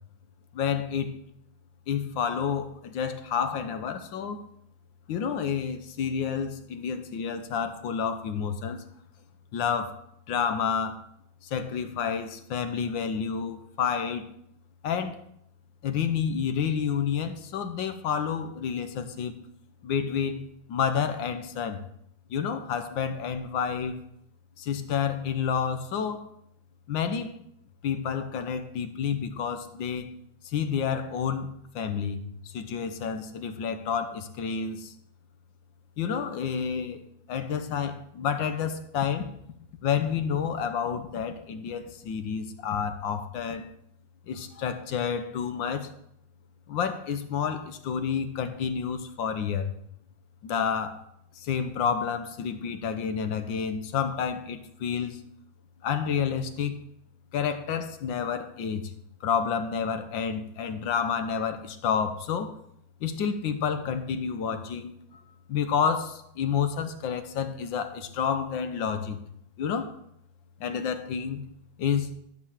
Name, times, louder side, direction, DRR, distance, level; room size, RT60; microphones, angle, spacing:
voice 1, 0.5-1.1 1.9-4.4 5.1-8.8 9.5-10.0 10.3-11.0 11.4-14.3 14.8-15.2 15.8-19.3 19.8-20.4 20.7-21.8 22.3-24.0 24.6-26.2 26.9-27.3 27.8-30.1 30.4-34.9 36.0-37.0 37.3-39.3 39.8-43.7 44.3-45.9 46.7-49.7 50.4-51.0 51.4-55.2 55.8-56.8 57.3-58.9 59.2-62.6 63.0-65.2 65.5-69.2 69.6-69.9 70.6-71.5 71.8-72.1, left 7 dB, 85° left, 10 dB, 1.6 m, -29 dB
12.0 x 4.2 x 7.1 m, 0.74 s
omnidirectional pair, 2.0 m